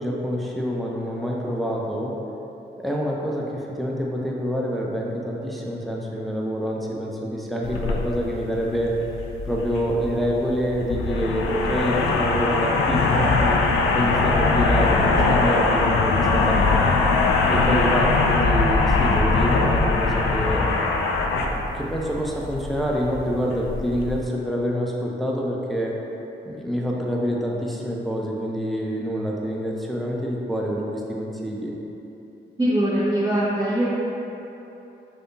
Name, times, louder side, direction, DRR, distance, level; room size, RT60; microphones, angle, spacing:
voice 1, 0.0-2.1 2.8-8.9 9.4-13.6 13.9-16.9 17.5-20.7 21.7-25.9 26.5-31.7, equal, ahead, -3 dB, 0.8 m, -26 dB
sound 1, 7.6-24.2, left 3 dB, 90° left, 0.4 m, -22 dB
voice 2, 32.6-33.9, right 1 dB, 25° right, -12 dB, 1.5 m, -22 dB
5.8 x 3.3 x 2.7 m, 3.0 s
supercardioid pair, 45°, 21 cm